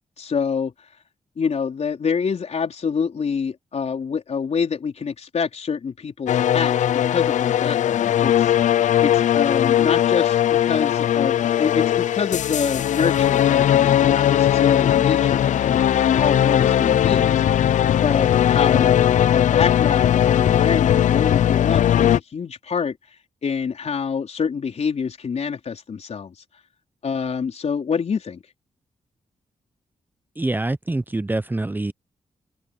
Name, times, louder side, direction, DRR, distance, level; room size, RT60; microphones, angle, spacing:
voice 1, 0.2-0.7 1.4-8.5 9.0-17.8 18.0-19.0 19.3-23.0 23.4-26.3 27.0-28.4, left 6 dB, 60° left, 4.3 m, -26 dB
sound 1, 6.3-22.2, left 10 dB, 80° left, 0.4 m, -19 dB
voice 2, 30.4-31.9, right 2 dB, 15° right, 0.6 m, -25 dB
open air
cardioid pair, 70°, 13 cm